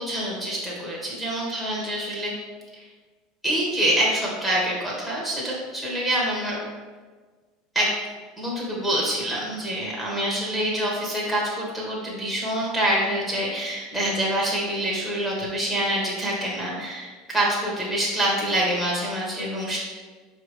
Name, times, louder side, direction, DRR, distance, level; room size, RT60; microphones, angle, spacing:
voice 1, 0.0-2.3 2.7-2.9 3.4-6.6 7.7-7.9 8.4-19.8, right 1 dB, ahead, -6 dB, 1.1 m, -26 dB
4.3 x 3.2 x 3.2 m, 1.4 s
supercardioid pair, 120°, 0 cm